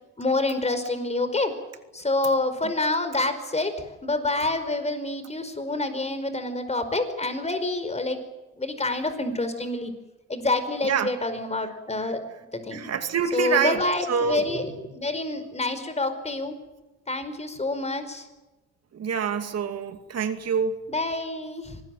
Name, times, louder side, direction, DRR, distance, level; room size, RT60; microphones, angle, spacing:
voice 1, 0.2-1.5 1.9-8.2 8.6-9.9 10.3-12.2 12.5-12.8 13.3-16.5 17.1-18.3 20.9-21.8, left 2 dB, 20° left, 10 dB, 5.0 m, -27 dB
voice 2, 12.7-13.8 14.1-14.4 18.9-20.7, right 6 dB, 55° right, 7 dB, 2.5 m, -26 dB
25.0 x 19.5 x 9.3 m, 1.1 s
cardioid pair, 90°, 30 cm